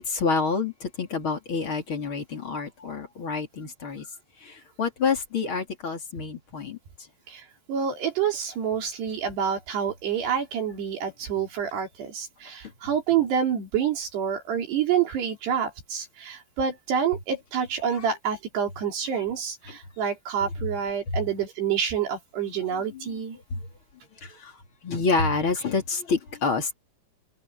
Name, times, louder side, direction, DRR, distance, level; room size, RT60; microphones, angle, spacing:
voice 1, 0.0-4.1 4.4-6.8 17.9-18.1 19.7-19.8 20.4-20.5 21.1-21.2 22.7-23.2 23.5-23.6 24.2-26.7, left 4 dB, 30° left, 3.3 m, -28 dB
voice 2, 7.3-23.4, right 8 dB, 70° right, 5.4 m, -28 dB
omnidirectional pair, 5.0 m